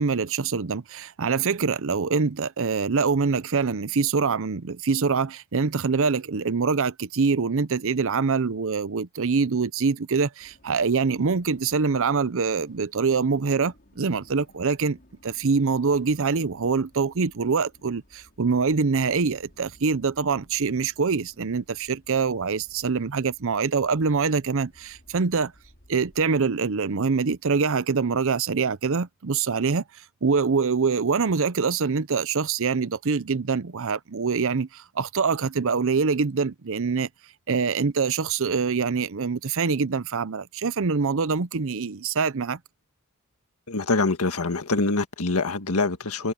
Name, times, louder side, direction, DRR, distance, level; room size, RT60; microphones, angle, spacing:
voice 1, 0.0-25.5 25.9-29.8 30.2-37.1 37.5-42.6, right 5 dB, 65° right, 0.7 m, -24 dB
sound 1, 10.4-26.3, left 1 dB, 45° left, 5.6 m, -57 dB
voice 2, 43.7-46.3, left 3 dB, 80° left, 1.7 m, -25 dB
head